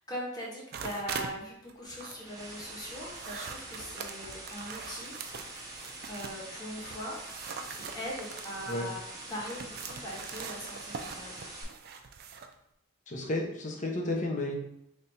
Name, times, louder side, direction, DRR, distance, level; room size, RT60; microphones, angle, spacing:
voice 1, 0.1-5.6 6.1-11.3, equal, 20° left, -4 dB, 1.1 m, -41 dB
sound 1, 0.7-1.4 1.7-6.5 6.8-12.5, right 6 dB, 50° right, 0.3 m, -43 dB
sound 2, 1.8-11.6, right 2 dB, 20° right, 0.9 m, -45 dB
voice 2, 13.1-14.5, left 1 dB, 35° left, 1 dB, 0.7 m, -32 dB
3.3 x 2.6 x 4.2 m, 0.78 s
head